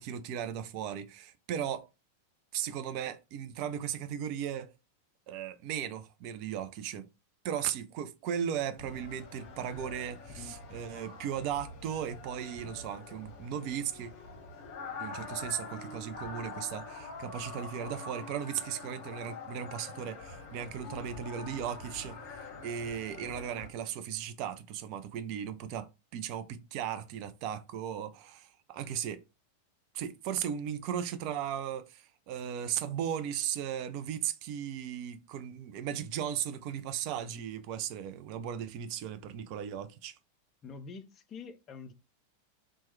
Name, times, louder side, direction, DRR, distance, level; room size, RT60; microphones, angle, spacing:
voice 1, 0.0-1.9 2.5-4.7 5.3-7.1 7.4-14.1 15.0-29.2 29.9-40.2, right 9 dB, 45° right, 0.4 m, -36 dB
sound 1, 8.8-23.7, left 3 dB, 45° left, 0.8 m, -45 dB
voice 2, 40.6-41.9, left 5 dB, 30° left, 0.4 m, -46 dB
2.9 x 2.1 x 3.1 m
figure-of-eight pair, 90°, 0 cm